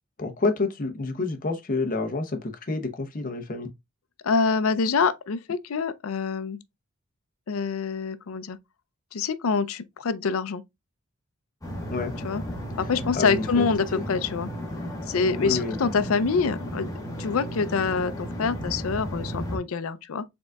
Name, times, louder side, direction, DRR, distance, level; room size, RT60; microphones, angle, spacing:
voice 1, 0.2-3.7 11.9-12.1 13.1-14.0 15.4-15.8, left 3 dB, 40° left, 0.8 m, -28 dB
voice 2, 4.2-6.6 7.5-8.6 9.1-10.6 12.2-12.4 12.8-14.5 15.1-16.9 17.2-20.2, left 5 dB, 80° left, 0.5 m, -26 dB
sound 1, 11.6-19.6, equal, 15° left, 1.2 m, -34 dB
5.0 x 3.7 x 2.3 m
head